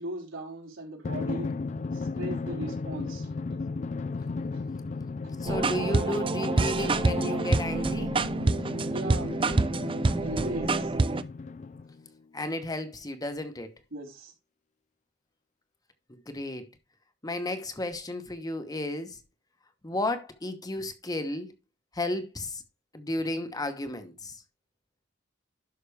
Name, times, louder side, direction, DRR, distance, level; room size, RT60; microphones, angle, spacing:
voice 1, 0.0-1.5 1.9-3.3 4.5-4.7 5.2-5.4 8.9-9.4 10.2-10.9 13.9-14.3, right 1 dB, 85° right, 4.0 m, -38 dB
Drum, 1.0-12.1, left 4 dB, 40° left, 0.4 m, -35 dB
voice 2, 5.4-8.1 12.3-13.7 16.1-16.7 17.2-19.2 19.8-21.5 21.9-22.6 22.9-24.4, left 1 dB, 20° left, 1.0 m, -33 dB
sound 1, 5.5-11.2, right 3 dB, 25° right, 0.5 m, -27 dB
11.5 x 5.9 x 3.4 m
head